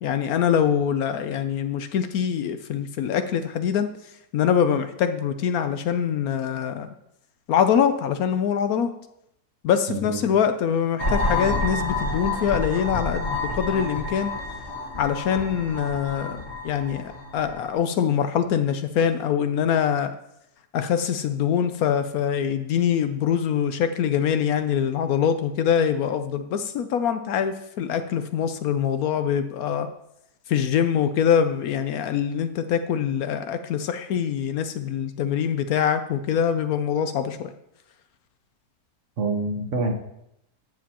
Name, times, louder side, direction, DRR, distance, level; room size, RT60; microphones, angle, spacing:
voice 1, 0.0-3.9 4.3-6.9 7.5-8.9 9.6-14.3 15.0-20.1 20.7-29.9 30.5-37.5, left 8 dB, 70° left, 9 dB, 1.0 m, -24 dB
voice 2, 9.9-10.2 39.2-39.9, right 3 dB, 50° right, 3 dB, 1.4 m, -26 dB
sound 1, 11.0-17.7, left 2 dB, 45° left, 2.1 m, -29 dB
14.0 x 7.3 x 2.9 m, 0.79 s
omnidirectional pair, 1.7 m